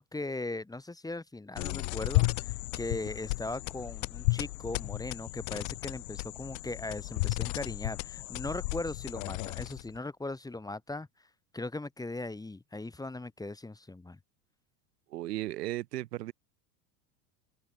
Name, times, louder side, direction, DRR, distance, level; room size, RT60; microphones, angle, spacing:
voice 1, 0.0-11.1 11.5-14.2, left 2 dB, 10° left, 1.4 m, -39 dB
sound 1, 1.5-10.0, left 27 dB, 60° left, 0.5 m, -33 dB
voice 2, 15.1-16.3, right 15 dB, 80° right, 1.1 m, -35 dB
open air
hypercardioid pair, 90°, 48 cm